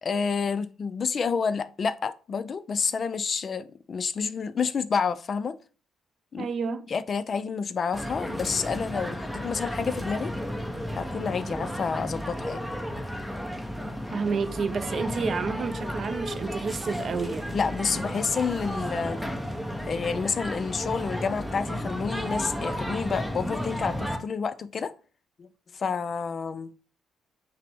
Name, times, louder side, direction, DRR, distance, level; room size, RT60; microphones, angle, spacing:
voice 1, 0.0-5.6 6.3-6.5 6.9-10.4 11.0-12.6 17.5-19.2 19.8-24.9 25.4-25.5 25.7-26.7, left 5 dB, 45° left, 0.3 m, -29 dB
voice 2, 6.4-6.9 14.1-17.5, right 5 dB, 50° right, 0.4 m, -30 dB
sound 1, 7.9-24.2, equal, ahead, 0.6 m, -33 dB
5.6 x 2.0 x 3.4 m
cardioid pair, 90°, 0 cm